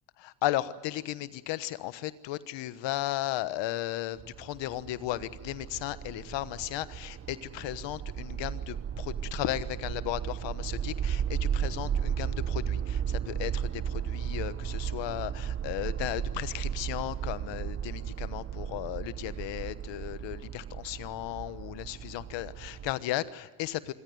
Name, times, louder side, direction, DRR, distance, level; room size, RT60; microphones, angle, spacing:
voice 1, 0.2-23.9, left 15 dB, 70° left, 14 dB, 1.3 m, -35 dB
sound 1, 4.2-22.9, right 8 dB, 30° right, 0.8 m, -35 dB
25.5 x 15.5 x 9.3 m, 1.3 s
cardioid pair, 100°, 45 cm